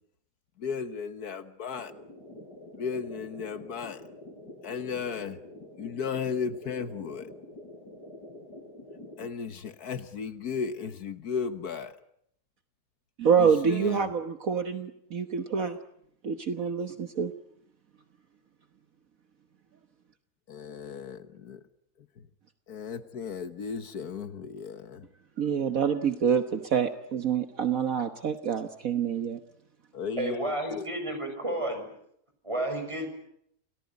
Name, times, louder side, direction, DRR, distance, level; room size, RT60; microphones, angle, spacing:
voice 1, 0.6-1.9 2.8-4.0 4.6-5.4 5.8-7.3 9.2-12.0 13.4-14.1 20.5-21.6 22.2-22.3 22.7-25.1 29.9-30.9, left 6 dB, 70° left, 11 dB, 1.7 m, -35 dB
sound 1, 1.8-9.3, left 1 dB, 90° left, 5.9 m, -46 dB
voice 2, 13.2-15.8 16.2-17.3 25.4-29.4, right 7 dB, 60° right, 8 dB, 1.6 m, -27 dB
voice 3, 30.2-31.8 32.4-33.1, right 1 dB, 20° right, 5 dB, 6.8 m, -31 dB
28.5 x 18.5 x 9.5 m, 0.73 s
omnidirectional pair, 1.7 m